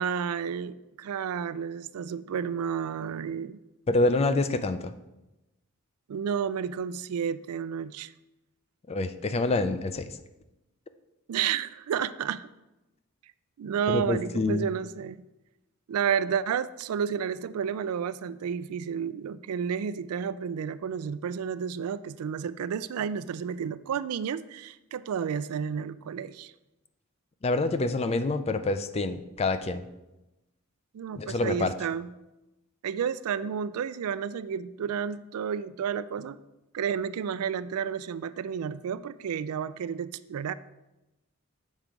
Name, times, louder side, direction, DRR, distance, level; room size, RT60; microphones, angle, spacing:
voice 1, 0.0-3.6 6.1-8.1 11.3-12.5 13.6-15.2 15.9-26.5 30.9-32.1 32.8-36.4 36.7-40.5, right 7 dB, 75° right, 15 dB, 0.3 m, -31 dB
voice 2, 3.9-4.9 8.9-10.2 13.9-14.7 27.4-29.8 31.2-31.7, left 2 dB, 30° left, 11 dB, 0.4 m, -27 dB
7.4 x 4.6 x 5.1 m, 0.98 s
head